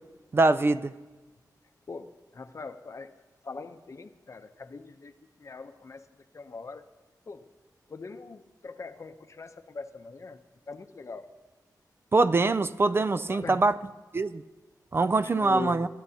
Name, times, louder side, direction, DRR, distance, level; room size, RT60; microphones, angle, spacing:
voice 1, 0.3-0.9 12.1-13.8 14.1-14.4 14.9-15.9, right 3 dB, 35° right, 0.3 m, -23 dB
voice 2, 1.9-3.2 3.4-5.1 5.4-6.0 6.3-6.9 7.3-7.5 7.9-10.4 10.7-11.3 13.3-13.6 15.3-15.8, left 4 dB, 45° left, 0.7 m, -41 dB
25.5 x 12.0 x 2.8 m
wide cardioid pair, 120°, 7 cm